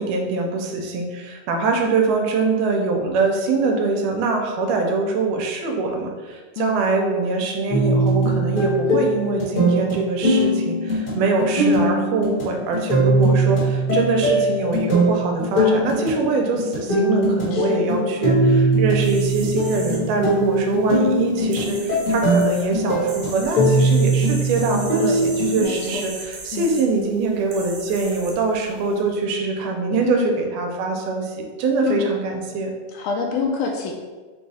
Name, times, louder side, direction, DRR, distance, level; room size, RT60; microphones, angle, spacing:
voice 1, 0.0-32.7, right 3 dB, 85° right, 2 dB, 2.1 m, -23 dB
sound 1, 7.7-25.6, right 1 dB, 45° left, 1.0 m, -21 dB
voice 2, 17.5-17.8 25.0-25.2 25.6-26.1 26.5-26.7 30.0-30.3 31.9-32.1 32.9-33.9, left 5 dB, 80° left, 0 dB, 1.9 m, -26 dB
sound 2, 19.0-29.0, right 3 dB, 70° right, 2.1 m, -38 dB
5.3 x 2.3 x 4.0 m, 1.4 s
omnidirectional pair, 3.7 m